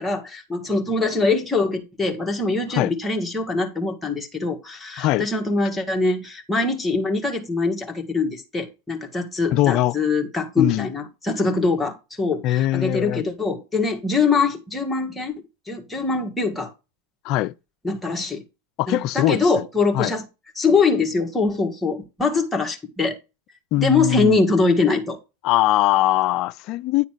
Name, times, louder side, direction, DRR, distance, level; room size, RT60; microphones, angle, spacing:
voice 1, 0.0-15.3 15.7-16.7 17.8-18.4 18.9-20.2 20.6-23.2 23.8-25.2, left 3 dB, 10° left, 1.8 m, -23 dB
voice 2, 9.5-10.0 10.6-10.9 12.4-13.2 17.2-17.5 18.8-19.7 19.9-20.1 23.7-24.4 25.4-27.1, left 15 dB, 50° left, 0.4 m, -21 dB
9.7 x 4.1 x 4.6 m
hypercardioid pair, 95°, 0 cm